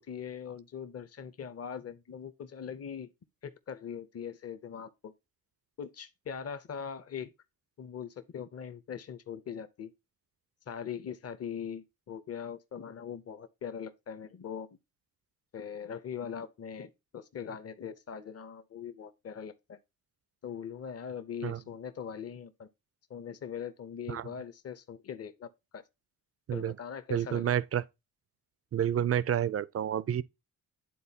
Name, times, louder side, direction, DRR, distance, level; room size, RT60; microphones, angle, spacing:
voice 1, 0.0-3.1 3.4-5.1 5.8-7.3 7.8-9.9 10.7-14.7 15.5-19.8 20.4-22.7 23.1-25.8 26.5-27.5, left 7 dB, 40° left, 0.8 m, -41 dB
voice 2, 27.1-27.8 28.7-30.2, right 10 dB, 40° right, 0.4 m, -29 dB
11.0 x 3.9 x 2.8 m
cardioid pair, 80°, 38 cm